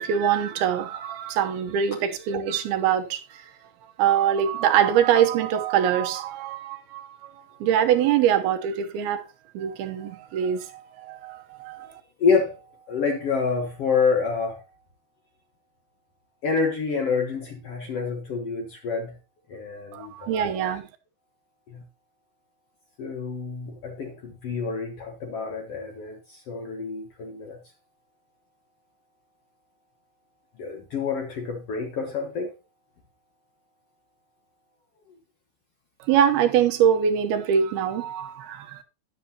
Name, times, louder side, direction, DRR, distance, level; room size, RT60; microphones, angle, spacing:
voice 1, 0.0-3.5 3.8-9.2 9.5-10.7 11.0-12.0 19.9-20.9 36.0-38.8, right 9 dB, 85° right, 2.9 m, -24 dB
voice 2, 11.7-12.6 12.9-14.6 16.4-19.2 19.5-20.4 21.7-21.8 23.0-27.6 30.6-32.5, left 5 dB, 60° left, 1.7 m, -28 dB
11.5 x 10.5 x 2.9 m
omnidirectional pair, 4.3 m